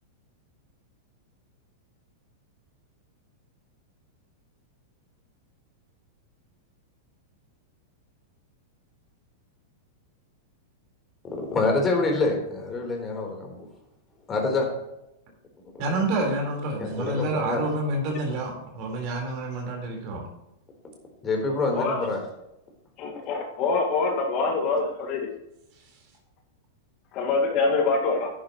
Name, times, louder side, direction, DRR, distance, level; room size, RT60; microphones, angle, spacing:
voice 1, 11.5-13.7 14.3-14.7 15.8-16.0 16.8-17.6 21.2-22.2, left 3 dB, 20° left, 1 dB, 3.8 m, -26 dB
voice 2, 15.8-20.2, right 2 dB, 45° right, 1 dB, 4.2 m, -28 dB
voice 3, 21.7-22.1 23.0-25.3 27.1-28.3, left 4 dB, 40° left, 2 dB, 1.9 m, -25 dB
11.5 x 10.0 x 3.1 m, 0.87 s
figure-of-eight pair, 100°, 0 cm